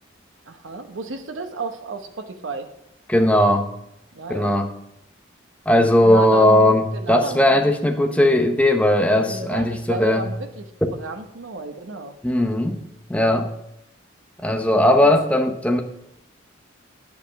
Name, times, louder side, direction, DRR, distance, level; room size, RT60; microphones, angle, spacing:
voice 1, 0.5-2.7 4.1-4.5 6.0-7.7 9.1-12.1 15.0-15.1, right 2 dB, 85° right, 7 dB, 0.9 m, -32 dB
voice 2, 3.1-3.7 4.3-4.7 5.7-10.3 12.2-12.8 13.1-13.5 14.4-15.8, left 1 dB, 5° left, 4 dB, 0.8 m, -18 dB
10.0 x 7.1 x 5.2 m, 0.80 s
head